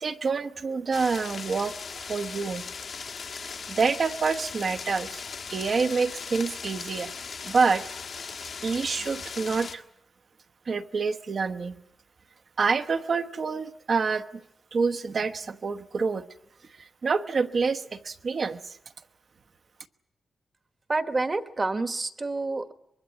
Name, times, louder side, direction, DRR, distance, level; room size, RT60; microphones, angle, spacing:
voice 1, 0.0-2.6 3.3-3.4 3.7-5.2 5.5-7.1 7.4-7.8 8.6-9.8 10.7-11.8 12.6-14.2 14.7-16.3 16.8-18.8, right 4 dB, 50° right, 10 dB, 1.0 m, -27 dB
sound 1, 0.9-9.8, left 5 dB, 60° left, 1.4 m, -38 dB
voice 2, 20.9-22.7, right 3 dB, 30° right, 10 dB, 1.2 m, -28 dB
24.0 x 22.0 x 8.4 m, 0.77 s
wide cardioid pair, 150°, 0 cm